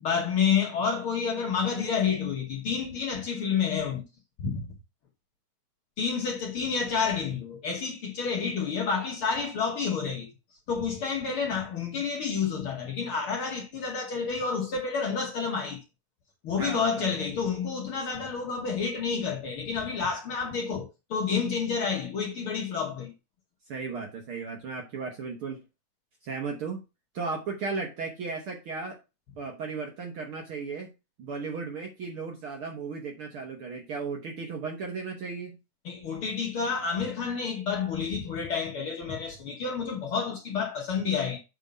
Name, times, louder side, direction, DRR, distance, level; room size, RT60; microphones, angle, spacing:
voice 1, 0.0-4.0 4.4-4.7 6.0-10.3 10.7-15.8 16.4-23.1 35.9-41.4, left 6 dB, 55° left, 1.7 m, -29 dB
voice 2, 16.6-17.2 23.7-25.6 26.2-26.8 27.1-29.0 29.4-30.9 31.2-35.6, right 4 dB, 55° right, 1.6 m, -35 dB
7.6 x 3.7 x 5.2 m
omnidirectional pair, 3.6 m